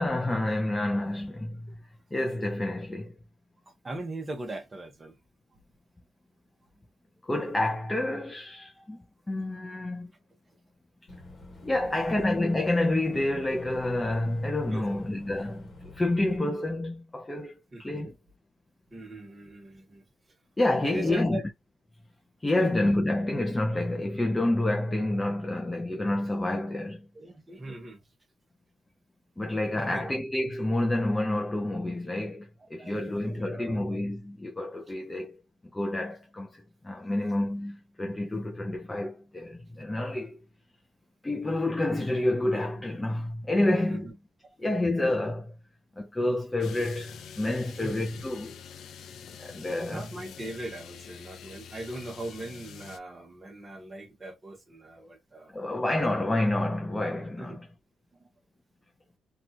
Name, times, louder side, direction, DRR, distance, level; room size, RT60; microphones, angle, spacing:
voice 1, 0.0-1.8 2.1-3.2 7.2-10.1 11.6-17.5 17.8-18.1 20.6-21.4 22.4-27.1 29.4-35.4 35.7-40.4 41.2-44.1 44.6-45.5 46.0-48.6 49.4-50.0 55.0-55.1 55.5-57.6, left 1 dB, 15° left, 0.5 m, -28 dB
voice 2, 3.7-5.2 5.5-5.6 11.5-11.6 14.7-15.0 17.7-17.8 18.9-20.1 20.8-21.4 22.5-22.8 26.7-26.9 27.1-28.0 29.7-30.1 32.8-34.0 43.9-44.1 44.6-44.7 47.8-47.9 49.9-55.5 57.4-57.6 58.1-58.3, right 1 dB, 25° right, 0.9 m, -40 dB
Boat Water vehicle / Engine, 11.1-16.4, left 2 dB, 35° left, 1.1 m, -46 dB
sound 1, 46.6-53.0, left 7 dB, 70° left, 0.4 m, -46 dB
2.8 x 2.3 x 2.7 m
cardioid pair, 90°, 0 cm